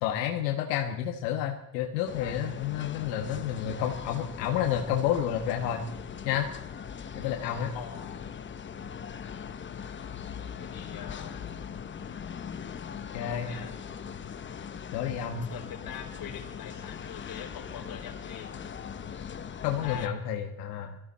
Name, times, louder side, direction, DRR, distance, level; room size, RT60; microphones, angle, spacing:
voice 1, 0.0-5.8 6.2-6.5 7.1-7.7 13.1-13.5 14.9-15.5 19.6-21.0, left 10 dB, 85° left, 3 dB, 1.7 m, -30 dB
sound 1, 2.0-20.1, left 7 dB, 25° left, 1.0 m, -40 dB
voice 2, 7.7-8.2 10.1-11.4 13.1-13.8 15.5-18.5 19.8-20.1, left 9 dB, 45° left, 1 dB, 4.6 m, -43 dB
21.5 x 14.5 x 4.3 m, 0.84 s
supercardioid pair, 115°, 49 cm